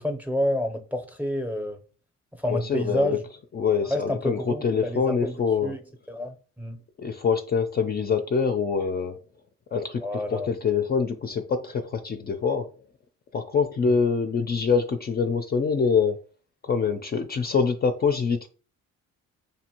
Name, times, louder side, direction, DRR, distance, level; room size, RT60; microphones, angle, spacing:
voice 1, 0.0-1.8 2.4-3.2 3.8-5.8 6.1-6.8 10.0-10.5 13.8-14.0, left 1 dB, 5° right, 0.7 m, -29 dB
voice 2, 2.5-3.2 3.5-5.7 7.0-9.2 9.7-12.7 13.3-16.2 16.6-18.5, left 5 dB, 35° left, 0.4 m, -25 dB
5.1 x 2.5 x 2.9 m
cardioid pair, 90°, 30 cm